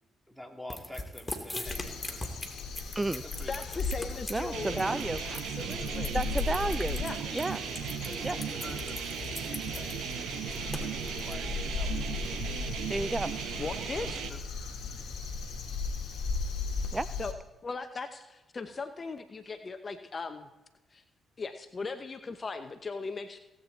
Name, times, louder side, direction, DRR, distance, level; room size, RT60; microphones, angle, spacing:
voice 1, 0.3-2.3 3.2-3.8 7.3-7.5 8.0-12.4 13.2-13.4 14.3-14.4, equal, ahead, 1 dB, 2.7 m, -48 dB
sound 1, 0.7-11.3, left 2 dB, 20° left, 2.5 m, -41 dB
Crow, 1.6-17.3, left 4 dB, 65° left, 1.6 m, -37 dB
voice 2, 3.5-5.0 5.2-6.1 7.0-7.2 12.5-12.8 13.6-14.2 17.2-17.3 17.6-20.5 20.9-21.0 21.4-23.4, left 4 dB, 40° left, 9 dB, 0.9 m, -38 dB
voice 3, 4.3-5.2 6.1-7.0 7.3-7.6 8.2-8.4 12.9-13.3 14.1-14.2 16.9-17.1, right 2 dB, 25° right, 15 dB, 0.4 m, -31 dB
sound 2, 4.5-14.3, right 9 dB, 70° right, 0.9 m, -37 dB
17.5 x 8.8 x 4.1 m, 1.1 s
hypercardioid pair, 45°, 0 cm